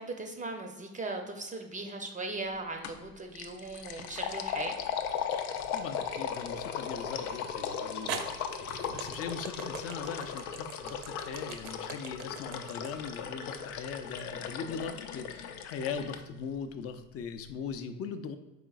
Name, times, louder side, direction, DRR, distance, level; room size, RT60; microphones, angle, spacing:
voice 1, 0.0-4.8, right 2 dB, 20° right, 4 dB, 0.5 m, -38 dB
sound 1, 2.8-3.1 3.3-16.2, left 7 dB, 80° left, 0.6 m, -37 dB
sound 2, 4.0-4.6 5.3-5.4 7.3-7.4 8.1-14.3, right 9 dB, 70° right, 0.7 m, -42 dB
voice 2, 5.7-18.4, left 6 dB, 35° left, 9 dB, 0.5 m, -40 dB
4.9 x 3.8 x 2.4 m, 1.1 s
hypercardioid pair, 80°, 43 cm